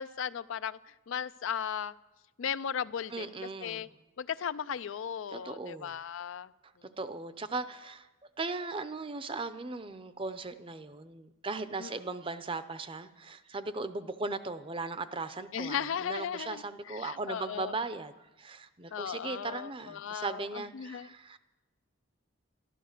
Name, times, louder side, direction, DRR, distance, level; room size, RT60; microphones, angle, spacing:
voice 1, 0.0-1.9 2.4-3.3 3.6-3.9 4.2-6.5 11.8-11.9 15.5-17.7 18.9-21.1, left 8 dB, 65° left, 16 dB, 0.4 m, -36 dB
voice 2, 3.1-3.9 5.3-5.9 6.8-8.1 8.4-21.4, right 3 dB, 25° right, 12 dB, 0.6 m, -38 dB
12.5 x 12.5 x 6.6 m, 1.1 s
head